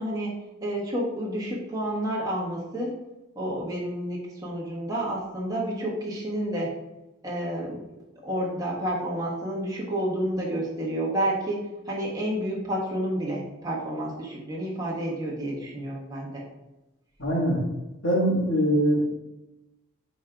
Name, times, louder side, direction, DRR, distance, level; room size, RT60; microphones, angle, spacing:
voice 1, 0.0-2.9 3.3-6.7 7.2-7.8 8.2-16.4, right 1 dB, 15° right, -5 dB, 1.4 m, -30 dB
voice 2, 17.2-17.6 18.0-19.2, equal, 60° left, -4 dB, 1.8 m, -23 dB
5.3 x 3.8 x 4.6 m, 1.0 s
head